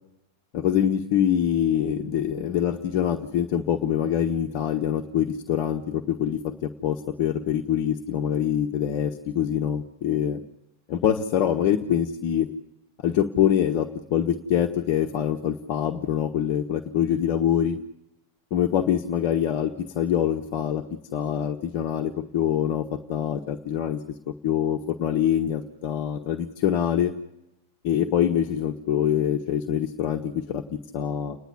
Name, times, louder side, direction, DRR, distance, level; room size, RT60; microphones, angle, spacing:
voice 1, 0.5-10.4 10.9-12.5 13.0-17.8 18.5-20.8 21.1-24.0 24.3-27.1 27.8-31.4, left 9 dB, 45° left, 4 dB, 1.3 m, -25 dB
29.5 x 10.5 x 9.6 m, 0.89 s
figure-of-eight pair, 90°, 0 cm